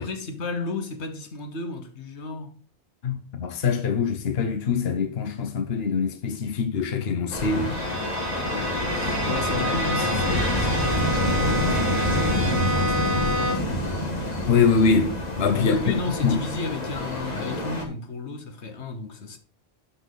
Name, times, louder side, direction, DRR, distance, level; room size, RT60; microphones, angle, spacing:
voice 1, 0.0-2.5 8.5-13.9 15.5-19.4, left 3 dB, 85° left, 1.5 m, -34 dB
voice 2, 3.0-7.7 14.5-15.8 16.2-16.4, left 5 dB, 65° left, 1.2 m, -23 dB
sound 1, 7.3-17.9, left 1 dB, 40° left, 1.7 m, -27 dB
Bowed string instrument, 7.4-13.8, equal, 85° right, 2.1 m, -29 dB
12.0 x 4.4 x 3.9 m
omnidirectional pair, 1.1 m